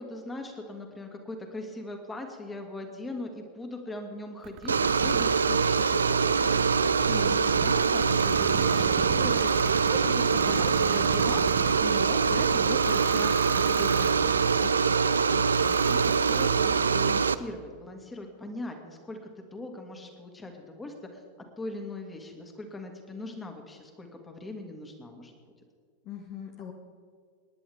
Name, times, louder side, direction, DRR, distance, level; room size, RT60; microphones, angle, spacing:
voice 1, 0.0-6.8 7.1-21.2 21.6-25.3, left 2 dB, 15° left, 4 dB, 2.4 m, -40 dB
sound 1, 4.4-14.7 15.3-17.0, right 12 dB, 40° right, 0.8 m, -38 dB
sound 2, 4.7-17.3, right 5 dB, 75° right, 0.5 m, -24 dB
voice 2, 7.3-7.7 26.0-26.7, left 9 dB, 40° left, 3 dB, 1.3 m, -42 dB
27.5 x 11.0 x 3.7 m, 2.1 s
figure-of-eight pair, 90°, 0 cm